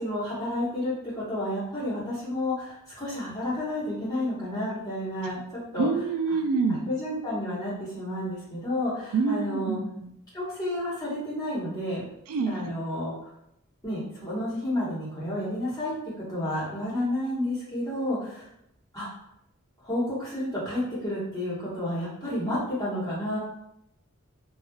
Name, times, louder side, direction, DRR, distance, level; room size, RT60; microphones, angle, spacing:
voice 1, 0.0-5.9 6.7-9.8 10.3-12.0 12.4-13.1 13.8-15.9 16.3-18.5 18.9-19.1 19.8-23.4, left 1 dB, 15° left, -8 dB, 1.1 m, -31 dB
voice 2, 5.8-6.9 9.1-10.1 12.3-12.7, right 4 dB, 80° right, 5 dB, 0.3 m, -26 dB
3.2 x 2.4 x 2.2 m, 0.76 s
head